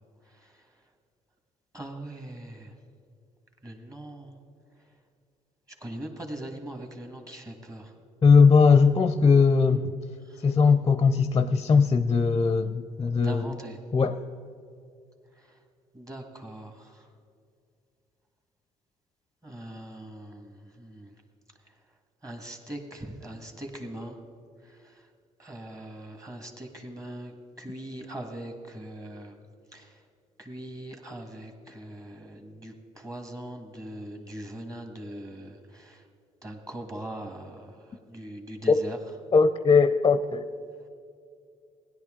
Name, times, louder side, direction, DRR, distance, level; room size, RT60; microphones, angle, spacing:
voice 1, 1.7-2.7 3.6-4.4 5.8-7.9 13.2-13.8 15.9-16.9 19.4-21.1 22.2-24.2 25.4-27.3 27.6-29.3 29.7-29.8 30.4-36.0 36.4-37.7 38.1-39.0, right 1 dB, 25° right, 4 dB, 1.7 m, -40 dB
voice 2, 8.2-9.9 10.4-13.5 13.9-14.2 38.7-38.8 39.3-40.5, left 5 dB, 30° left, 11 dB, 0.5 m, -20 dB
16.5 x 10.5 x 3.8 m, 2.4 s
supercardioid pair, 70°, 14 cm